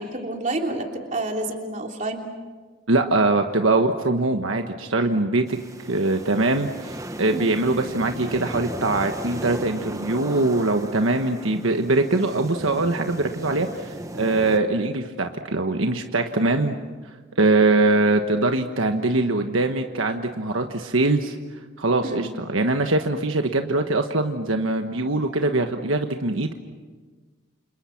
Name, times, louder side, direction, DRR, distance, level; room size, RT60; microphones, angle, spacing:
voice 1, 0.0-2.2 7.3-7.6 16.3-16.7 22.0-22.3, right 2 dB, 35° right, 2 dB, 3.2 m, -29 dB
voice 2, 2.9-5.6 5.9-16.8 17.4-21.3 21.8-26.5, right 2 dB, 75° right, 5 dB, 1.3 m, -22 dB
sound 1, 5.5-14.6, right 1 dB, 15° right, 1.3 m, -36 dB
29.5 x 28.0 x 6.0 m, 1.4 s
head